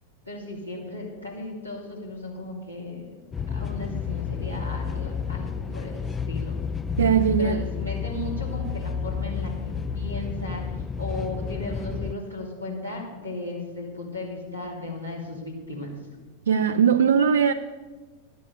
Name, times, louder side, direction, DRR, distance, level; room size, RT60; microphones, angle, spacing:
voice 1, 0.2-3.1 3.5-6.6 7.4-15.9, left 1 dB, 90° left, -4 dB, 2.9 m, -36 dB
sound 1, 3.3-12.1, left 6 dB, 15° left, 0.4 m, -31 dB
voice 2, 7.0-7.6 16.5-17.5, right 7 dB, 65° right, 7 dB, 0.4 m, -20 dB
12.0 x 8.4 x 6.9 m, 1.3 s
figure-of-eight pair, 90°, 0 cm